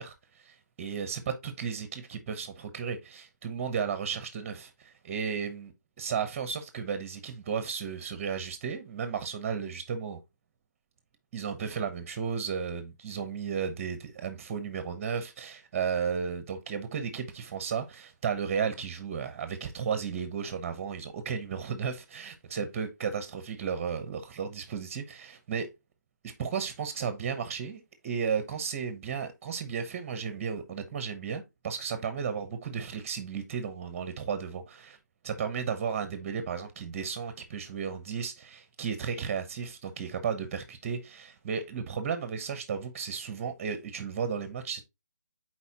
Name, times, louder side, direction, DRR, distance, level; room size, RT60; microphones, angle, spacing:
voice 1, 0.0-5.7 6.0-10.2 11.3-25.7 26.2-35.0 35.2-44.8, right 6 dB, 20° right, 0.9 m, -34 dB
8.2 x 4.4 x 2.9 m
figure-of-eight pair, 160°, 10 cm